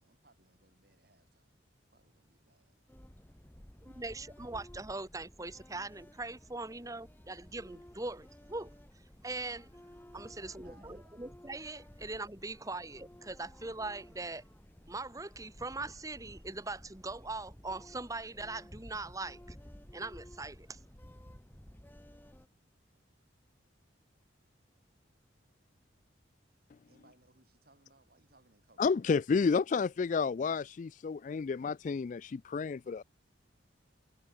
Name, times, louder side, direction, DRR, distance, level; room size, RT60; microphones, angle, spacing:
voice 1, 0.0-1.6 1.9-2.8 10.2-11.0 26.9-28.9, right 2 dB, 55° right, 6.5 m, -66 dB
sound 1, 2.9-22.5, equal, 10° left, 1.2 m, -54 dB
voice 2, 3.8-8.7 9.2-9.7 10.1-14.4 14.9-19.4 19.9-20.8, right 3 dB, 20° right, 1.6 m, -41 dB
voice 3, 28.8-33.0, left 5 dB, 40° left, 0.3 m, -31 dB
head